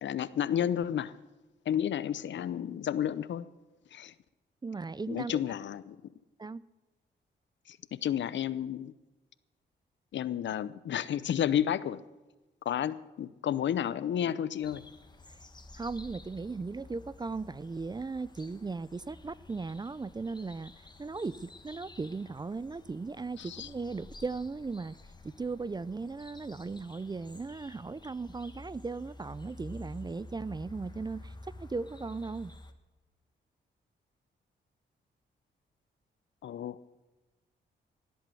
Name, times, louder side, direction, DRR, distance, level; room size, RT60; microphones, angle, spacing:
voice 1, 0.0-1.1 1.7-3.5 3.9-4.1 5.1-6.0 7.7-8.9 10.1-12.0 12.7-14.8 23.4-23.7 36.4-36.8, left 10 dB, 70° left, 17 dB, 0.7 m, -31 dB
voice 2, 4.6-5.4 6.4-6.6 15.8-20.7 21.0-24.9 25.2-31.3 31.6-32.5, right 4 dB, 20° right, 20 dB, 0.4 m, -37 dB
sound 1, 14.6-32.7, left 2 dB, 20° left, 1.4 m, -51 dB
17.5 x 8.2 x 7.6 m, 1.1 s
cardioid pair, 65°, 20 cm